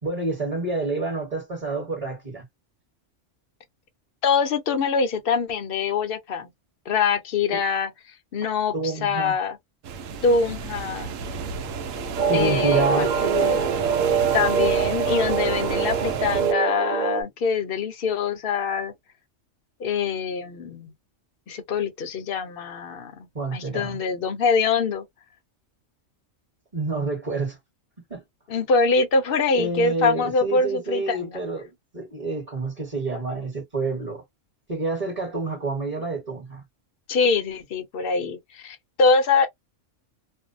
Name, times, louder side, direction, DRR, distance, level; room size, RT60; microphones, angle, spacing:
voice 1, 0.0-2.4 7.5-7.6 8.7-9.4 12.3-13.1 23.3-24.0 26.7-27.6 28.1-28.2 29.5-34.2 34.7-36.6, right 3 dB, 30° right, 1.2 m, -28 dB
voice 2, 4.2-6.5 6.9-7.9 8.3-9.6 10.2-11.1 12.3-13.6 14.3-18.9 19.8-20.9 21.5-25.0 28.5-31.4 37.1-39.5, left 5 dB, 55° left, 0.8 m, -24 dB
sound 1, 9.8-16.5, right 5 dB, 90° right, 1.0 m, -31 dB
sound 2, 12.2-17.2, right 7 dB, 50° right, 0.6 m, -24 dB
2.6 x 2.1 x 2.5 m
omnidirectional pair, 1.3 m